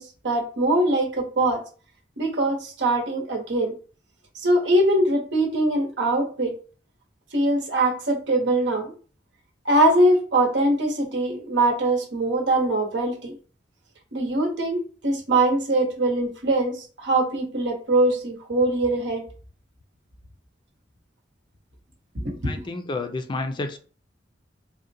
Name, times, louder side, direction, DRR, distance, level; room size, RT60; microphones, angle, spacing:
voice 1, 0.0-1.6 2.2-3.8 4.3-6.6 7.3-8.9 9.6-13.3 14.1-19.2 22.1-22.5, right 1 dB, 85° right, 0.9 m, -22 dB
voice 2, 22.4-23.8, left 3 dB, 25° left, 0.3 m, -30 dB
3.7 x 2.1 x 2.7 m
head